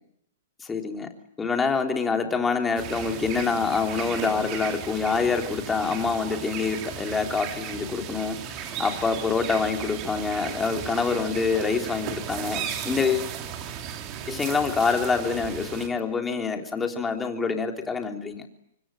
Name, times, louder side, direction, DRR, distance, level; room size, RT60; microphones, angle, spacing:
voice 1, 0.6-1.1 1.4-13.3 14.3-18.5, left 5 dB, 15° left, 4 dB, 3.5 m, -26 dB
sound 1, 2.8-15.9, right 8 dB, 35° right, 3.9 m, -36 dB
26.0 x 24.5 x 9.1 m, 0.74 s
hypercardioid pair, 130°, 0 cm